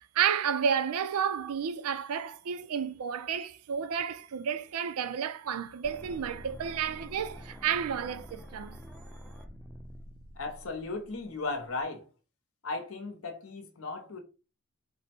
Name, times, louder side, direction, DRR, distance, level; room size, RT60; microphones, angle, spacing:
voice 1, 0.1-8.8, right 7 dB, 85° right, 0.4 m, -31 dB
sound 1, 5.8-11.8, equal, ahead, 0.4 m, -47 dB
voice 2, 10.4-12.1 12.6-14.2, left 3 dB, 70° left, 0.8 m, -36 dB
4.0 x 2.1 x 4.3 m
head